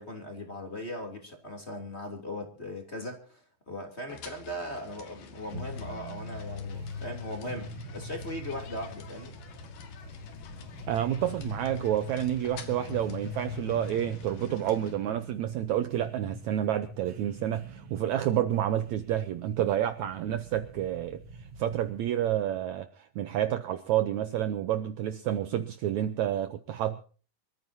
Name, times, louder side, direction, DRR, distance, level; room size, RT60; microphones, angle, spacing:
voice 1, 0.0-9.3, left 1 dB, 20° left, 3.2 m, -39 dB
sound 1, 4.1-15.0, left 6 dB, 75° left, 3.5 m, -48 dB
sound 2, 5.5-22.3, left 2 dB, 50° right, 1.3 m, -43 dB
voice 2, 10.9-21.2 21.6-27.0, right 11 dB, 70° right, 1.9 m, -29 dB
26.0 x 14.0 x 2.8 m
omnidirectional pair, 3.9 m